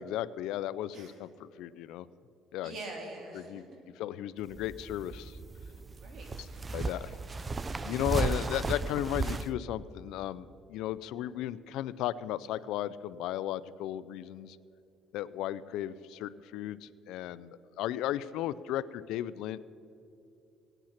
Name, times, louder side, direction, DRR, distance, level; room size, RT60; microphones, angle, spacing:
voice 1, 0.0-2.1 2.5-2.7 3.3-3.6 4.0-5.4 6.7-7.2 7.8-14.6 15.1-19.6, left 12 dB, 80° left, 17 dB, 0.5 m, -35 dB
voice 2, 2.6-3.8 6.0-6.9 15.3-15.4, right 2 dB, 55° right, 1 dB, 3.4 m, -45 dB
sound 1, 4.4-9.5, right 3 dB, 25° right, 0.5 m, -35 dB
18.0 x 9.1 x 5.8 m, 2.8 s
cardioid pair, 115°, 0 cm